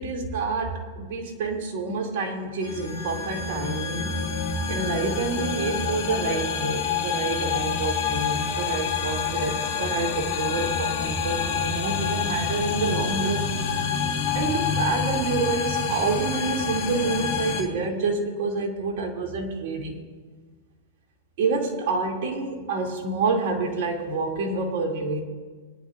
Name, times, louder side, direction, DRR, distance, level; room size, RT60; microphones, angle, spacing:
voice 1, 0.0-4.2 4.7-13.5 14.3-20.0 21.4-25.2, right 3 dB, 60° right, 1 dB, 2.5 m, -28 dB
sound 1, 2.6-17.6, left 6 dB, 60° left, 2.4 m, -27 dB
21.0 x 10.5 x 2.5 m, 1.5 s
hypercardioid pair, 120°, 0 cm